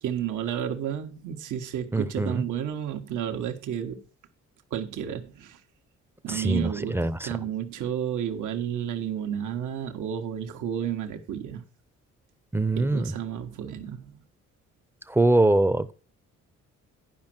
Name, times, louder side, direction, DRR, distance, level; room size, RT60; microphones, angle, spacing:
voice 1, 0.0-4.0 4.7-5.6 6.2-11.6 12.7-14.2, right 9 dB, 80° right, 1.3 m, -31 dB
voice 2, 1.9-2.4 6.3-7.3 12.5-13.1 15.1-15.9, right 2 dB, 10° right, 0.6 m, -23 dB
11.0 x 5.2 x 6.0 m
cardioid pair, 90°, 30 cm